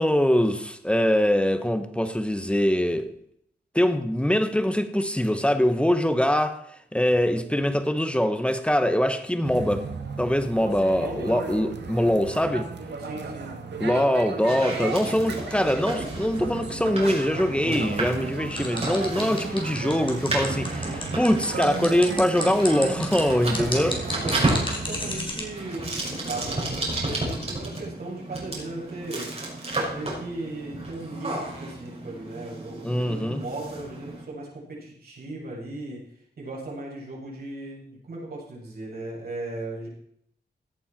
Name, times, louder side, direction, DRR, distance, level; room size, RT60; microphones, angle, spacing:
voice 1, 0.0-3.1 3.7-6.6 6.9-9.9 10.2-12.7 13.8-24.0 32.8-33.4, equal, 5° left, 1.5 m, -23 dB
sound 1, 9.4-25.2, right 4 dB, 85° right, 1.9 m, -35 dB
voice 2, 10.9-11.4 13.0-13.5 13.9-14.1 23.8-29.3 29.9-36.0 36.4-39.9, right 2 dB, 60° right, 7.6 m, -37 dB
sound 2, 14.5-34.2, right 2 dB, 35° right, 6.2 m, -33 dB
sound 3, 18.5-25.4, left 2 dB, 30° left, 4.6 m, -33 dB
17.0 x 11.5 x 4.5 m
wide cardioid pair, 95°, 18 cm